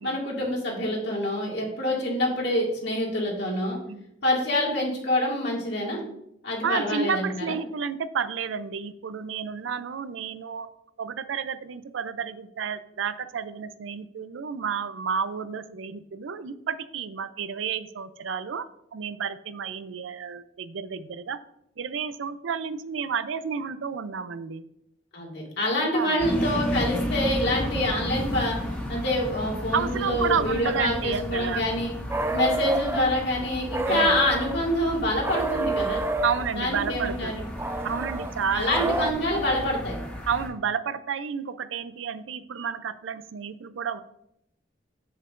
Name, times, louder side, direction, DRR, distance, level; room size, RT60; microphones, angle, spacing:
voice 1, 0.0-3.8 4.2-6.0 6.4-7.6 25.1-28.6 28.9-31.9 32.3-36.0 36.6-37.4 38.5-40.0, left 1 dB, 65° left, -2 dB, 2.0 m, -26 dB
voice 2, 6.6-10.7 11.0-21.4 21.8-24.6 25.9-26.2 29.7-31.6 33.9-34.2 36.2-37.4 37.8-38.9 40.3-44.0, right 6 dB, 85° right, 13 dB, 0.4 m, -31 dB
sound 1, 26.2-40.5, left 1 dB, 10° left, 1.4 m, -33 dB
sound 2, 32.1-33.1 33.7-34.6 35.2-36.5 37.6-39.1, right 2 dB, 15° right, 0.3 m, -28 dB
7.7 x 6.5 x 2.5 m, 0.77 s
head